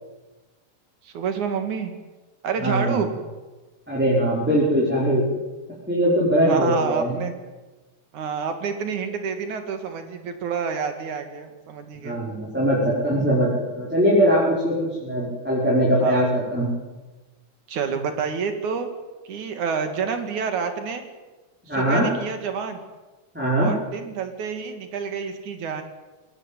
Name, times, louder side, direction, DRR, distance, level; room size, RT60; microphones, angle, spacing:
voice 1, 1.0-1.9 2.4-3.1 6.4-7.3 8.1-12.2 16.0-16.2 17.7-18.9 19.3-21.0 21.7-22.8 23.6-25.8, right 6 dB, 90° right, 7 dB, 3.6 m, -28 dB
voice 2, 2.6-3.0 3.9-5.3 5.9-7.1 12.0-13.5 13.8-16.7 21.7-22.1 23.3-23.7, equal, 5° right, -6 dB, 5.2 m, -21 dB
20.5 x 19.0 x 9.2 m, 1.2 s
omnidirectional pair, 3.3 m